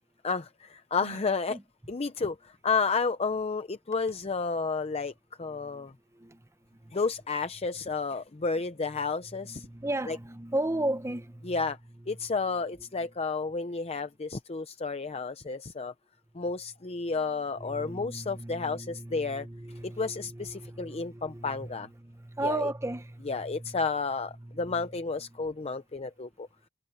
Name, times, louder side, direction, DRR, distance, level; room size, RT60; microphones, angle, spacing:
voice 1, 0.2-1.6 1.9-5.1 5.4-5.9 6.9-9.7 10.1-10.2 11.4-11.8 12.1-15.9 16.3-19.5 19.8-21.9 22.4-22.7 23.3-26.5, left 4 dB, 30° left, 0.6 m, -31 dB
voice 2, 5.6-5.9 6.1-6.4 6.7-6.9 9.4-11.6 17.6-23.8 24.4-24.9, right 1 dB, 15° right, 0.9 m, -36 dB
head